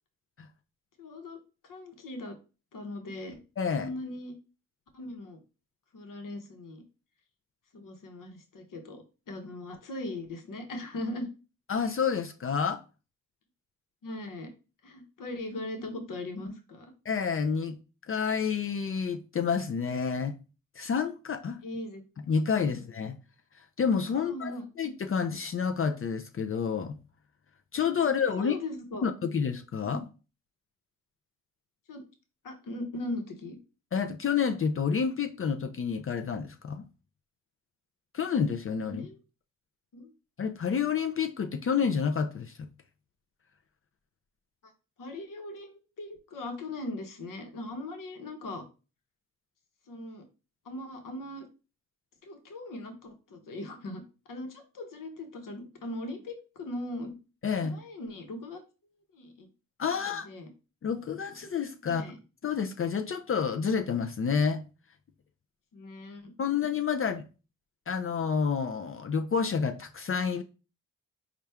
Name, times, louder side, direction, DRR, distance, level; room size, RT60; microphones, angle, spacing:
voice 1, 1.0-2.4 2.7-3.4 3.7-4.3 4.9-5.4 5.9-6.8 7.7-11.3 14.0-14.5 14.8-16.9 21.6-22.0 24.1-24.6 28.0-28.1 28.4-29.0 29.8-30.0 31.9-32.0 32.4-33.6 38.9-39.2 39.9-40.1 44.6-44.7 45.0-48.6 49.9-50.2 50.6-51.5 52.2-54.0 54.3-57.2 57.6-58.6 59.1-59.5 60.0-60.5 61.8-62.2 65.7-66.3, left 1 dB, 70° left, 1.0 m, -39 dB
voice 2, 3.6-3.9 11.7-12.8 17.1-17.8 18.1-20.3 20.8-21.6 22.3-23.2 23.8-27.0 27.7-28.6 29.0-30.0 33.9-36.8 38.1-39.0 40.4-42.7 57.4-57.8 59.8-60.3 60.8-62.0 62.4-64.6 66.4-67.2 67.9-70.4, left 6 dB, 40° left, 0.5 m, -29 dB
4.3 x 2.4 x 3.4 m
supercardioid pair, 45°, 33 cm